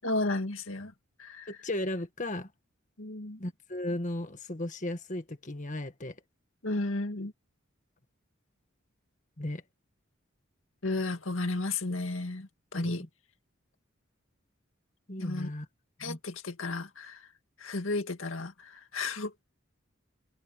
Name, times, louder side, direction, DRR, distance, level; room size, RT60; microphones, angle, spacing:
voice 1, 0.0-1.6 3.0-3.4 6.6-7.3 10.8-13.0 15.2-15.5 16.0-17.3 17.6-19.4, left 2 dB, 85° left, 2.1 m, -33 dB
voice 2, 1.5-2.5 3.4-6.2 9.4-9.6 12.7-13.1 15.1-15.6 16.0-16.2, left 1 dB, 40° left, 1.8 m, -35 dB
head